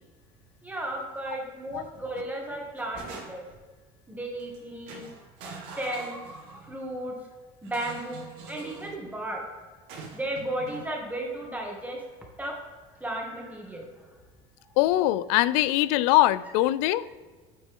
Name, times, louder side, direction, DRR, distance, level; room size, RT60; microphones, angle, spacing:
voice 1, 0.6-3.4 4.1-5.1 5.8-7.1 7.6-9.4 10.1-12.0 12.4-12.6 13.0-14.2, right 1 dB, 10° right, -1 dB, 2.1 m, -34 dB
sound 1, 1.7-2.1 2.5-3.6 4.4-4.6 4.9-6.7 7.6-9.0 9.9-10.9, right 4 dB, 80° right, 2.3 m, -44 dB
voice 2, 14.8-17.0, left 15 dB, 85° left, 17 dB, 0.4 m, -22 dB
9.1 x 6.2 x 3.7 m, 1.4 s
supercardioid pair, 115°, 18 cm